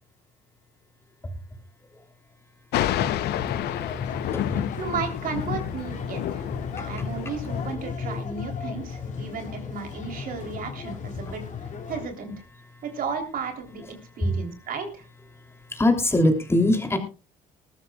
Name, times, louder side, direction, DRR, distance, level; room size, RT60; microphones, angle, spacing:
Thunder, 2.7-7.8, left 12 dB, 75° left, 0.8 m, -30 dB
sound 1, 2.9-12.1, left 5 dB, 45° left, 2.6 m, -35 dB
voice 1, 4.2-4.6 14.2-14.3 15.7-17.0, left 1 dB, 15° left, 5 dB, 3.1 m, -22 dB
voice 2, 4.8-6.4 6.8-11.4 11.9-12.3 12.8-15.0, right 5 dB, 55° right, 5 dB, 3.4 m, -34 dB
20.0 x 13.5 x 2.4 m, 0.32 s
cardioid pair, 110°, 17 cm